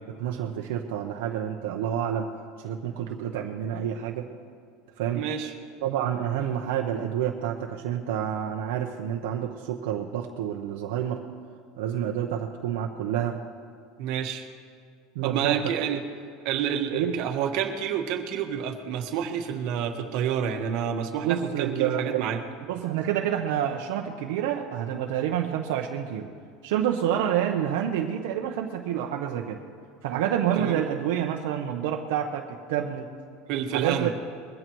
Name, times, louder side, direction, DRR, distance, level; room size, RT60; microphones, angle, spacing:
voice 1, 0.1-2.3 2.6-4.3 5.0-5.2 5.8-11.2 11.8-13.4 15.1-15.6 16.9-17.1 21.2-22.3 22.7-26.3 26.6-29.6 30.0-33.1 33.7-34.1, right 10 dB, 80° right, 2 dB, 0.9 m, -28 dB
voice 2, 5.1-5.5 14.0-14.5 15.2-16.0 16.4-22.4 30.6-30.8 33.5-34.1, right 8 dB, 60° right, 4 dB, 1.3 m, -29 dB
21.5 x 15.5 x 3.1 m, 2.3 s
supercardioid pair, 150°, 0 cm